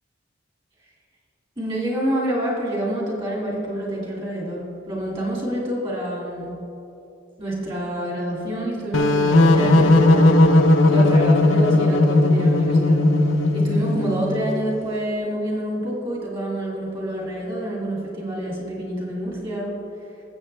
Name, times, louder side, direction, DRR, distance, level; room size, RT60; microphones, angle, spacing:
voice 1, 1.6-6.5 7.4-10.3 10.9-13.0 13.5-19.7, right 1 dB, 30° right, -4 dB, 2.5 m, -27 dB
sound 1, 8.9-14.4, left 2 dB, 85° left, 0.7 m, -16 dB
18.0 x 7.7 x 3.3 m, 2.9 s
head